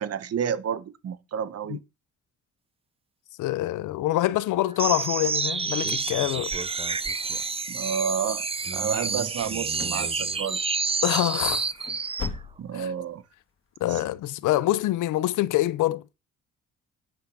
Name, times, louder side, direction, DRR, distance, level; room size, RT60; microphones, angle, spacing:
voice 1, 0.0-1.8 7.7-10.6 12.6-13.2 13.8-14.0, right 7 dB, 55° right, 1.2 m, -30 dB
voice 2, 3.4-6.5 11.0-11.7 12.7-12.9 13.8-16.0, left 15 dB, 85° left, 0.7 m, -25 dB
sound 1, 4.8-12.3, right 4 dB, 20° right, 0.6 m, -29 dB
sound 2, 9.3-10.1 10.3-10.8 11.1-11.2 11.7-12.9 13.2-13.3 13.9-14.0, left 5 dB, 45° left, 2.5 m, -38 dB
9.5 x 5.9 x 6.3 m
cardioid pair, 90°, 30 cm